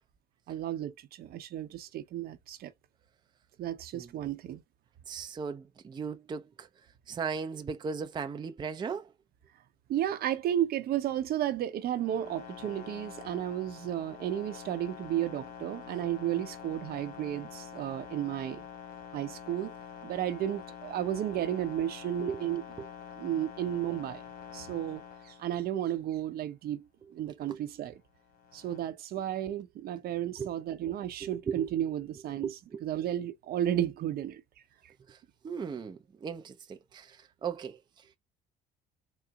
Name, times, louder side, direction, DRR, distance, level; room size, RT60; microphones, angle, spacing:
voice 1, 0.5-2.7 3.6-4.6 9.9-18.6 19.1-19.7 20.0-22.6 23.2-24.2 24.5-28.0 28.5-32.5 32.8-34.4, right 11 dB, 65° right, 0.7 m, -33 dB
voice 2, 5.1-6.7 7.1-9.1 22.2-22.4 22.8-22.9 27.3-27.6 30.4-30.5 30.8-30.9 31.2-31.7 32.4-32.8 35.1-35.2 35.4-37.8, right 6 dB, 25° right, 0.5 m, -37 dB
sound 1, 11.8-25.9 28.2-28.8, left 8 dB, 60° left, 1.2 m, -46 dB
3.9 x 2.1 x 3.4 m
cardioid pair, 110°, 17 cm